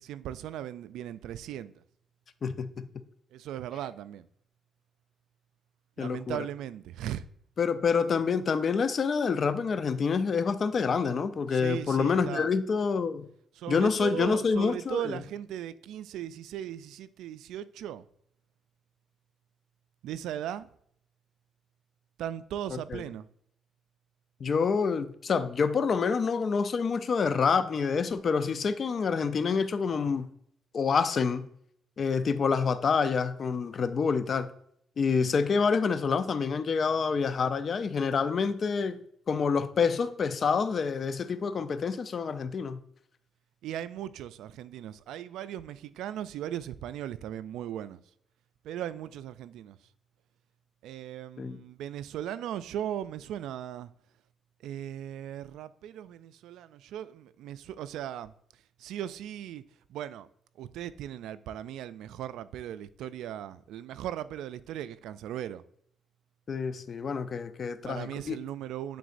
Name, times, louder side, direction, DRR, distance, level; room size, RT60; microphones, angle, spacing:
voice 1, 0.0-1.7 3.3-4.3 6.0-7.2 11.5-12.5 13.5-18.0 20.0-20.7 22.2-23.3 43.6-48.0 48.6-49.8 50.8-53.9 54.6-58.3 58.8-59.6 59.9-60.3 60.6-65.6 67.8-69.0, right 11 dB, 85° right, 0.3 m, -38 dB
voice 2, 2.4-2.9 6.0-6.4 7.6-13.3 13.7-15.2 22.9-23.0 24.4-30.3 30.7-31.5 32.0-34.5 35.0-39.0 39.3-42.8 51.4-51.6 66.5-68.4, left 5 dB, 50° left, 0.5 m, -27 dB
9.2 x 4.0 x 2.6 m
cardioid pair, 90°, 0 cm